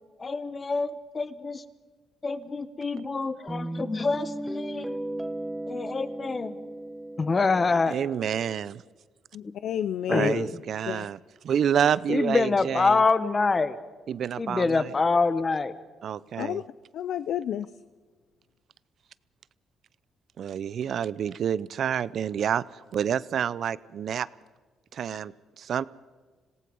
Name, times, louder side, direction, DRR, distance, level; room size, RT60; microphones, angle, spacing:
voice 1, 0.2-1.6 2.2-5.0 5.7-6.6 7.2-8.0 10.1-10.5 12.1-13.8 14.4-15.7, left 4 dB, 30° left, 14 dB, 1.2 m, -26 dB
Guitar, 3.5-8.5, right 1 dB, 5° right, 1.5 m, -36 dB
voice 2, 7.9-8.8 10.1-11.2 11.4-13.0 14.1-14.9 16.0-16.6 20.4-22.6 22.9-24.3 24.9-25.3 25.6-25.9, right 8 dB, 60° right, 19 dB, 0.6 m, -28 dB
voice 3, 9.3-10.3 10.9-11.1 16.4-16.6 16.9-17.7, left 10 dB, 75° left, 15 dB, 0.5 m, -30 dB
26.5 x 18.0 x 5.4 m, 1.4 s
cardioid pair, 90°, 0 cm